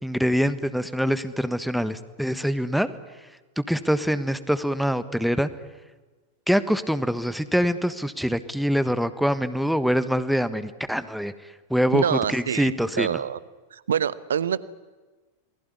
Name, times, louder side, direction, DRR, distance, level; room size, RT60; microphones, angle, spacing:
voice 1, 0.0-2.9 3.6-5.5 6.5-11.3 11.7-13.1, equal, ahead, 13 dB, 1.4 m, -24 dB
voice 2, 11.9-13.4 13.7-14.6, right 8 dB, 65° right, 18 dB, 1.1 m, -26 dB
28.5 x 21.0 x 9.7 m, 1.3 s
figure-of-eight pair, 90°, 0 cm